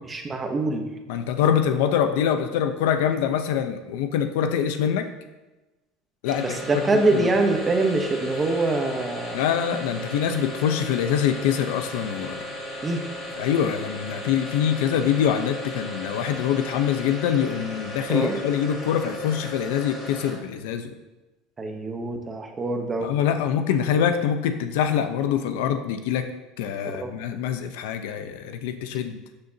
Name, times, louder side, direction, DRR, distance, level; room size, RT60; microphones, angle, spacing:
voice 1, 0.1-0.9 6.4-9.4 12.8-13.0 18.1-18.4 21.6-23.1 26.9-27.1, right 2 dB, 15° right, 4 dB, 1.0 m, -24 dB
voice 2, 1.1-5.1 6.2-6.6 6.9-7.3 9.3-12.5 13.4-20.9 23.0-26.3 26.6-29.2, left 8 dB, 85° left, 8 dB, 0.8 m, -24 dB
sound 1, 6.2-20.6, equal, 30° left, 2.4 m, -36 dB
13.0 x 6.8 x 2.9 m, 1.1 s
cardioid pair, 160°, 0 cm